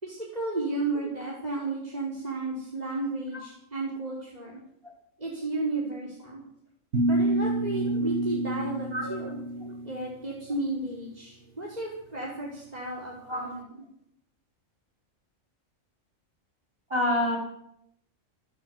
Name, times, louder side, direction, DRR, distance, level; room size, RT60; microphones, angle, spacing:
voice 1, 0.0-4.6 5.2-6.4 7.0-9.4 9.8-13.8, right 2 dB, 30° right, -4 dB, 5.2 m, -33 dB
sound 1, 6.9-10.1, right 1 dB, 60° right, 2.1 m, -28 dB
voice 2, 8.9-9.3 9.6-9.7 13.3-13.4 16.9-17.4, left 1 dB, 45° right, 0 dB, 8.1 m, -27 dB
28.0 x 13.5 x 8.1 m, 0.76 s
omnidirectional pair, 1.3 m